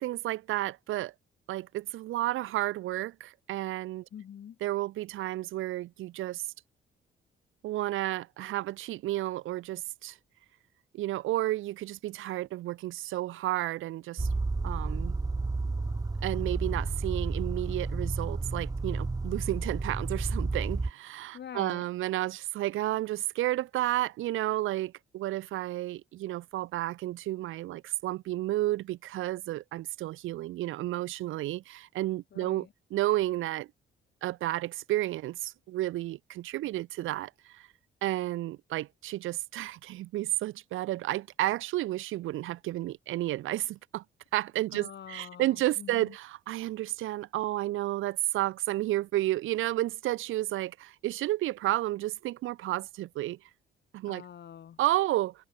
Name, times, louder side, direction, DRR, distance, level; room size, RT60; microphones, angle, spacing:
voice 1, 0.0-1.1 1.5-4.0 4.6-6.5 7.6-10.2 10.9-14.3 14.6-15.2 16.2-33.7 34.2-37.7 38.0-44.0 44.3-53.4 53.9-54.2 54.8-55.5, right 15 dB, 85° right, 2.0 m, -32 dB
voice 2, 4.1-4.6 21.3-21.8 32.3-32.7 44.7-46.2 54.1-54.8, left 9 dB, 60° left, 7.7 m, -45 dB
sound 1, 14.2-20.9, right 3 dB, 20° right, 1.4 m, -31 dB
cardioid pair, 90°, 20 cm